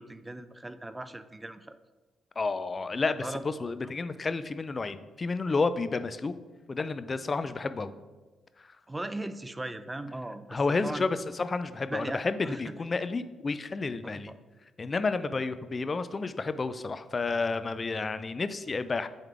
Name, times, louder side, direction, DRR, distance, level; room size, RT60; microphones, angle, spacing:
voice 1, 0.0-1.8 3.2-3.4 8.9-11.1 11.9-12.7 14.0-14.4, right 2 dB, 20° right, 12 dB, 0.5 m, -38 dB
voice 2, 2.4-6.4 6.7-8.0 8.6-8.7 10.5-14.3 14.8-19.1, left 3 dB, 40° left, 12 dB, 0.4 m, -31 dB
9.1 x 3.6 x 3.5 m, 1.2 s
supercardioid pair, 55°, 0 cm